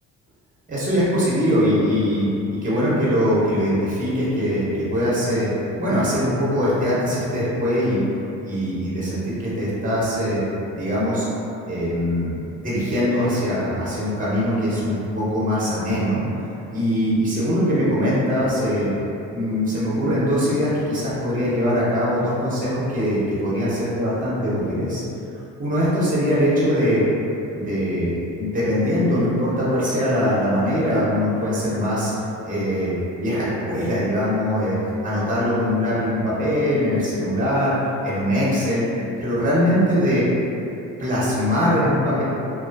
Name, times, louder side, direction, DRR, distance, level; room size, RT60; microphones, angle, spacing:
voice 1, 0.7-5.5 5.8-8.0 8.4-10.4 10.7-11.3 11.7-12.4 12.6-16.2 16.7-18.9 19.3-25.0 25.6-27.0 27.5-32.1 32.4-34.8 35.0-37.7 38.0-38.8 39.2-40.2 41.0-42.2, equal, 25° right, -9 dB, 1.1 m, -22 dB
2.6 x 2.3 x 2.5 m, 2.8 s
supercardioid pair, 60°, 32 cm